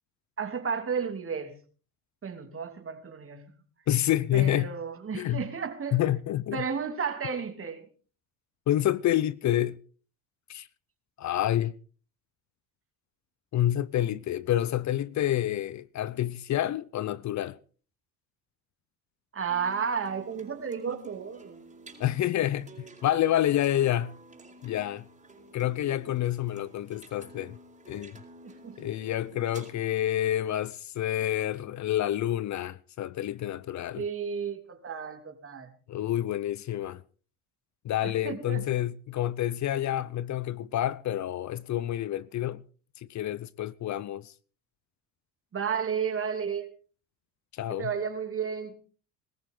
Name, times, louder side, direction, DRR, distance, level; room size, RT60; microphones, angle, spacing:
voice 1, 0.4-1.5 2.2-3.5 4.3-6.0 6.5-7.9 19.3-21.6 28.6-28.8 33.9-35.7 38.0-38.6 45.5-46.7 47.7-48.7, right 6 dB, 35° right, 3.0 m, -32 dB
voice 2, 3.9-4.7 5.1-5.4 5.9-6.6 8.7-9.8 10.5-10.7 11.2-11.8 13.5-17.6 22.0-22.7 23.0-24.1 24.6-25.1 25.5-27.6 27.9-28.2 28.8-34.0 35.9-37.0 37.8-42.6 43.0-44.3 47.5-47.9, left 12 dB, 50° left, 0.7 m, -28 dB
sound 1, 19.5-29.7, right 2 dB, 20° right, 4.7 m, -51 dB
20.5 x 14.0 x 3.8 m
supercardioid pair, 90°, 37 cm